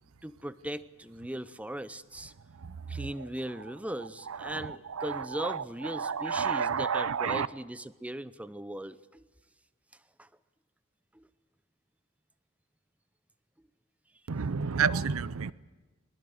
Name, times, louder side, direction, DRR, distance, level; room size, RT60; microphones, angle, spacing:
voice 1, 0.2-2.3 2.9-9.2 10.2-10.3 11.1-11.2, right 1 dB, 5° right, 14 dB, 0.7 m, -38 dB
voice 2, 4.4-5.6 5.9-7.5 14.3-15.5, right 6 dB, 90° right, 17 dB, 0.6 m, -30 dB
22.0 x 20.5 x 7.9 m, 1.2 s
head